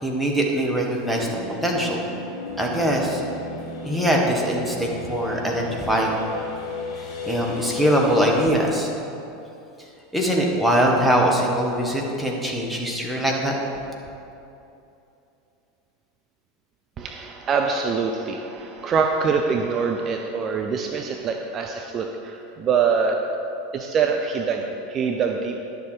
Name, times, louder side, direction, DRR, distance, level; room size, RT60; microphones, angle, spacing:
voice 1, 0.0-1.3 1.6-2.0 2.6-3.2 3.8-6.2 7.2-8.9 10.1-13.5, equal, ahead, -2 dB, 1.6 m, -22 dB
sound 1, 1.1-8.5, left 3 dB, 35° left, 1.6 m, -34 dB
voice 2, 17.0-23.2 23.7-25.7, right 5 dB, 35° right, 3 dB, 0.6 m, -24 dB
10.5 x 7.0 x 5.0 m, 2.8 s
figure-of-eight pair, 80°, 0 cm